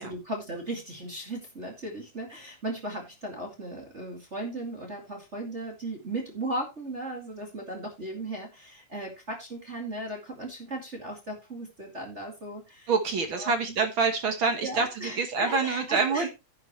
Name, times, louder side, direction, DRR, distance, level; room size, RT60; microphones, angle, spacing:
voice 1, 0.0-12.9 13.3-13.5 14.6-16.3, right 1 dB, 25° right, 0 dB, 2.1 m, -36 dB
voice 2, 12.9-16.3, right 4 dB, 55° right, 6 dB, 1.5 m, -26 dB
10.5 x 9.7 x 3.1 m, 0.25 s
omnidirectional pair, 3.7 m